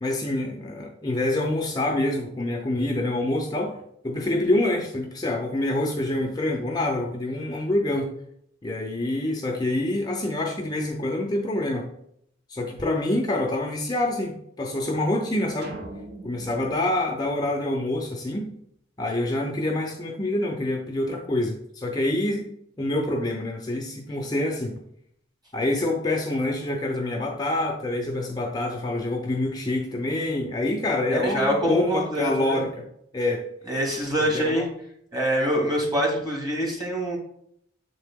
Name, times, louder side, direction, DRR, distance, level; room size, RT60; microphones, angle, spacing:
voice 1, 0.0-3.7 4.0-8.1 8.6-11.9 12.5-15.7 16.2-18.5 19.0-22.4 22.8-24.7 25.5-32.9 33.1-33.4 34.2-34.7 35.8-35.9, left 1 dB, 20° left, 1 dB, 0.6 m, -26 dB
sound 1, 15.6-18.1, right 2 dB, 55° right, 0.8 m, -42 dB
voice 2, 31.1-32.6 33.7-34.7 35.1-37.2, equal, 20° right, -1 dB, 1.7 m, -25 dB
7.4 x 3.7 x 3.5 m, 0.71 s
head